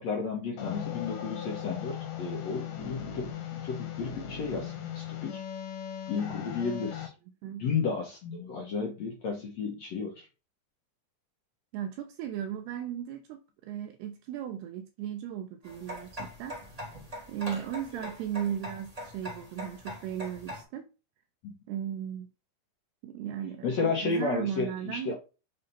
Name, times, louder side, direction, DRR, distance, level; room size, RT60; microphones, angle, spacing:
voice 1, 0.0-5.4 6.1-7.1 7.6-10.3 17.9-18.1 21.4-21.5 23.6-25.1, left 4 dB, 90° left, 1.5 m, -33 dB
sound 1, 0.6-7.1, left 9 dB, 60° left, 1.9 m, -38 dB
voice 2, 11.7-16.6 17.3-20.9 21.7-22.3 23.0-25.1, right 10 dB, 80° right, 2.4 m, -36 dB
sound 2, 15.6-20.6, equal, 55° right, 0.4 m, -42 dB
7.5 x 4.4 x 4.1 m
omnidirectional pair, 5.3 m